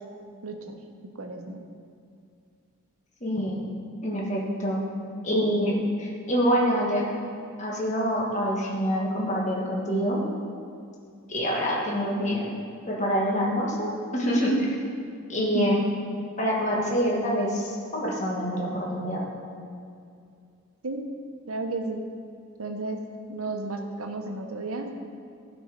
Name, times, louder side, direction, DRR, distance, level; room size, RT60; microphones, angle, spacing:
voice 1, 0.4-0.8 1.1-1.6 15.4-15.8 20.8-21.1 21.5-22.0 22.6-23.0 23.3-24.9, right 2 dB, 85° right, 4 dB, 0.9 m, -32 dB
voice 2, 3.2-3.6 4.0-4.8 5.2-7.0 7.6-10.2 11.3-12.5 12.9-14.8 15.3-15.9 16.4-19.2, equal, 35° left, -3 dB, 1.4 m, -26 dB
12.5 x 5.2 x 5.2 m, 2.4 s
head